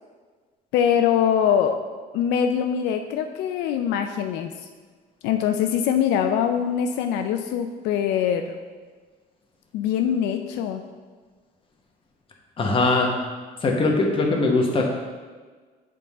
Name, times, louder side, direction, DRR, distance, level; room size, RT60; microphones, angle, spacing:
voice 1, 0.7-1.8 2.1-4.5 5.2-8.6 9.7-10.8, left 8 dB, 90° left, 6 dB, 0.4 m, -23 dB
voice 2, 12.6-13.1 13.6-14.9, left 3 dB, 30° left, 0 dB, 1.1 m, -21 dB
6.8 x 3.7 x 4.1 m, 1.4 s
cardioid pair, 110°, 17 cm